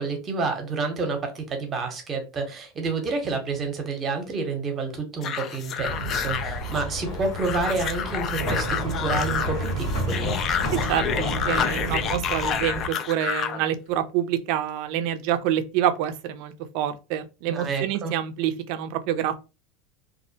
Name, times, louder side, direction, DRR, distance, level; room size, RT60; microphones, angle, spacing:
voice 1, 0.0-10.4 17.5-18.1, right 4 dB, 30° right, 0.8 m, -29 dB
sound 1, 5.2-13.6, left 8 dB, 40° left, 0.3 m, -29 dB
sound 2, 5.8-12.9, equal, 90° left, 1.2 m, -30 dB
voice 2, 10.9-19.4, right 11 dB, 65° right, 0.4 m, -27 dB
2.4 x 2.1 x 2.6 m
supercardioid pair, 115°, 0 cm